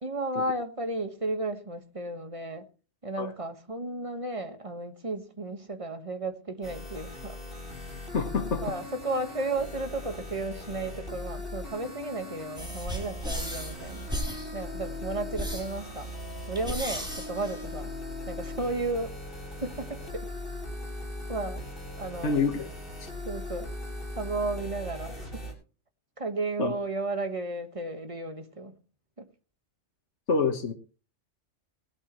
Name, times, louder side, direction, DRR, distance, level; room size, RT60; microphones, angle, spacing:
voice 1, 0.0-2.6 3.0-7.4 8.6-14.1 14.5-16.1 16.5-17.9 18.3-19.2 19.5-20.3 21.3-21.6 22.0-22.4 23.2-23.7 24.1-25.5 26.2-28.7 29.2-29.3, right 2 dB, 30° right, 1.5 m, -33 dB
sound 1, 6.6-25.5, left 1 dB, 50° left, 6.1 m, -39 dB
voice 2, 8.1-8.6 22.2-22.7 23.0-23.1 26.6-26.7 30.3-30.7, left 4 dB, 70° left, 1.6 m, -26 dB
sound 2, 12.6-18.2, equal, 5° right, 4.2 m, -37 dB
19.0 x 12.5 x 3.1 m
omnidirectional pair, 1.2 m